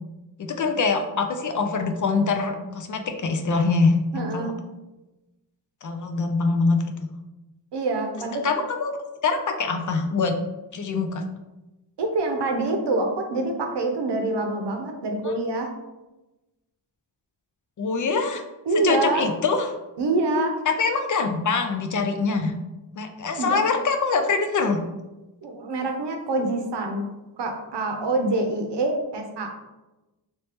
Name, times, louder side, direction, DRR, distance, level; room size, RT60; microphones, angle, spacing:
voice 1, 0.4-4.5 5.8-7.1 8.4-8.9 9.2-10.4 10.7-11.2 15.2-15.3 17.8-18.4 18.8-19.7 20.7-22.5 23.0-24.8, left 4 dB, 45° left, 6 dB, 0.4 m, -24 dB
voice 2, 4.1-4.5 7.7-8.4 12.0-15.7 18.7-19.2 20.0-20.6 23.4-23.6 25.4-27.1 27.4-29.5, right 2 dB, 70° right, 4 dB, 0.7 m, -25 dB
3.0 x 2.9 x 3.3 m, 1.0 s
wide cardioid pair, 125°, 43 cm